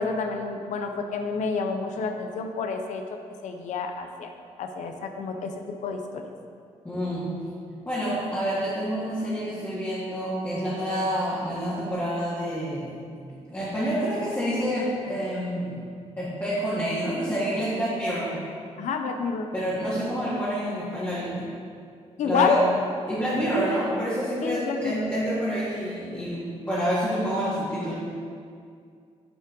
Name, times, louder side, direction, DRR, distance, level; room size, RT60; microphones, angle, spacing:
voice 1, 0.0-3.0 3.4-4.3 4.6-5.5 5.8-6.3 18.8-19.5 22.2-22.6 24.4-25.1, left 5 dB, 80° left, 5 dB, 0.7 m, -28 dB
voice 2, 6.8-7.3 7.9-12.9 13.5-15.8 16.2-18.4 19.5-21.5 22.2-22.6 23.1-27.9, equal, 15° left, -11 dB, 1.9 m, -28 dB
8.2 x 5.6 x 3.9 m, 2.3 s
cardioid pair, 120°, 12 cm